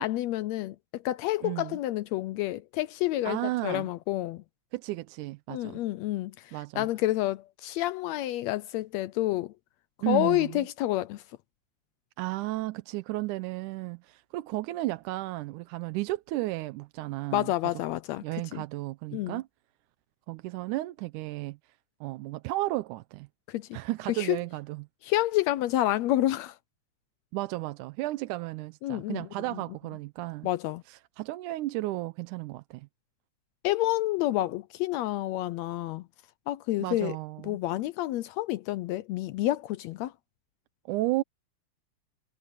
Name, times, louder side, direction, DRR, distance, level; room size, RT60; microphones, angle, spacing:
voice 1, 0.0-4.4 5.5-6.3 6.8-9.5 10.1-11.2 17.3-18.2 18.5-18.6 19.1-19.4 23.5-23.8 24.2-24.4 25.0-26.5 28.8-29.3 30.4-30.8 33.6-36.0 36.5-37.2 37.4-40.1, left 15 dB, 80° left, 1.6 m, -29 dB
voice 2, 1.4-1.8 3.2-3.9 4.7-5.8 6.5-6.9 10.0-10.7 12.2-17.5 18.2-19.5 20.3-21.6 22.0-23.3 23.7-24.9 27.3-30.5 30.9-32.9 36.8-37.6 40.9-41.2, right 18 dB, 85° right, 2.1 m, -33 dB
omnidirectional pair, 3.5 m